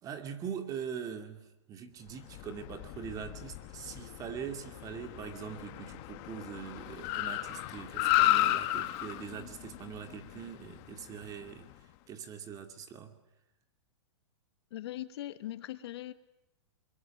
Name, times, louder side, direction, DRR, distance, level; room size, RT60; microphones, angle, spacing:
voice 1, 0.0-11.7 12.1-13.2, right 7 dB, 25° right, 6 dB, 2.5 m, -42 dB
Car, 2.2-11.7, left 16 dB, 40° left, 1.2 m, -34 dB
voice 2, 14.7-16.1, left 14 dB, 60° left, 11 dB, 1.6 m, -40 dB
24.5 x 22.5 x 9.2 m, 0.93 s
hypercardioid pair, 145°, 15 cm